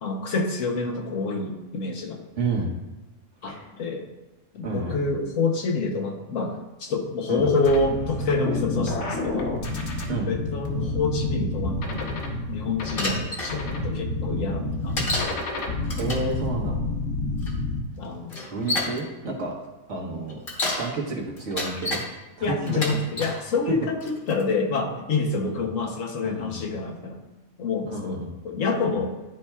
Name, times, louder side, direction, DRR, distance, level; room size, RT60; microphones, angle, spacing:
voice 1, 0.0-2.2 3.4-4.1 4.5-9.5 10.3-12.2 12.5-15.5 18.0-18.5 22.4-27.2 27.6-29.1, left 3 dB, 85° left, 1 dB, 1.3 m, -27 dB
voice 2, 2.4-2.7 3.5-3.6 4.6-5.1 7.3-7.4 10.1-10.3 16.0-16.8 18.5-19.6 19.9-20.4 20.8-22.0 22.4-23.0 23.7-23.8 25.3-25.6 26.2-26.7 27.9-28.3, right 3 dB, 70° right, -3 dB, 1.6 m, -30 dB
sound 1, 7.6-17.8, left 2 dB, 65° left, 1.2 m, -29 dB
Bicycle, 13.0-13.5 15.0-15.4 15.8-16.3 17.4-17.5 18.3-19.0 20.3-20.9 21.4-22.0 22.7-23.4 24.0-24.4, left 1 dB, 45° left, 1.3 m, -29 dB
10.5 x 4.2 x 2.3 m, 1.1 s
omnidirectional pair, 1.3 m